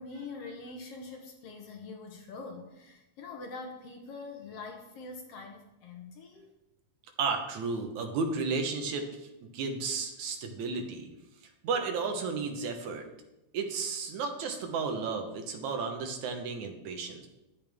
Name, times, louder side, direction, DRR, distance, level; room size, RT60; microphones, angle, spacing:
voice 1, 0.0-6.5, left 3 dB, 60° left, 2 dB, 2.0 m, -44 dB
voice 2, 7.2-11.1 11.6-13.1 13.5-17.3, right 4 dB, 80° right, 4 dB, 2.5 m, -33 dB
10.5 x 8.6 x 3.5 m, 0.92 s
omnidirectional pair, 3.3 m